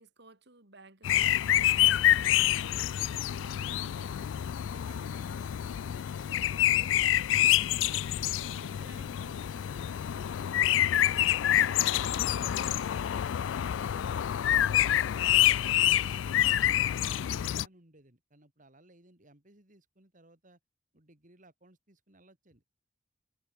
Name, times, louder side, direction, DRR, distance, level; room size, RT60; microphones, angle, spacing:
voice 1, 0.0-3.4 3.6-4.3 4.6-7.6 8.1-9.9, right 2 dB, 65° right, 4.2 m, -57 dB
sound 1, 1.0-17.7, left 12 dB, 90° left, 0.3 m, -27 dB
voice 2, 3.3-3.8 10.1-11.7 14.6-16.0 16.4-20.6 20.9-22.6, right 2 dB, 45° right, 3.6 m, -60 dB
head